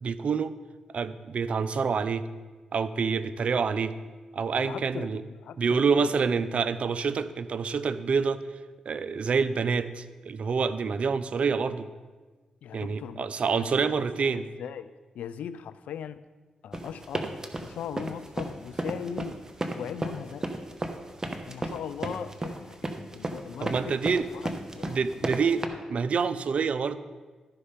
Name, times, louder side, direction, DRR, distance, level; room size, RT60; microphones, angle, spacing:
voice 1, 0.0-0.5 0.9-2.2 2.7-3.9 4.3-5.2 5.6-8.5 8.9-11.9 12.7-14.5 23.6-24.2 24.9-27.0, right 5 dB, 65° right, 13 dB, 0.5 m, -27 dB
voice 2, 4.5-5.9 6.4-6.5 12.6-16.2 16.6-17.3 17.6-19.4 19.7-20.5 21.5-24.0 24.3-25.3, left 8 dB, 85° left, 14 dB, 0.4 m, -40 dB
sound 1, 16.7-25.7, right 2 dB, 25° right, 1.0 m, -33 dB
12.5 x 5.5 x 5.1 m, 1.3 s
supercardioid pair, 50°, 2 cm